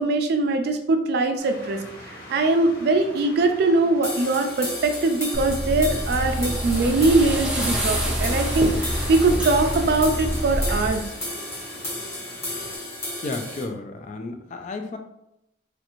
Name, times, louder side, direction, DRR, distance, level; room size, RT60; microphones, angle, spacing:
voice 1, 0.0-1.8 2.3-11.0, right 2 dB, 60° right, 6 dB, 0.3 m, -21 dB
sound 1, 1.4-12.8, left 1 dB, 55° left, 1.0 m, -45 dB
sound 2, 4.0-13.6, left 1 dB, 15° left, 1.1 m, -33 dB
softer curtain brush, 5.3-10.9, equal, 5° right, 0.6 m, -26 dB
voice 2, 13.2-15.0, left 3 dB, 40° left, 5 dB, 0.3 m, -32 dB
3.1 x 2.5 x 2.9 m, 0.83 s
head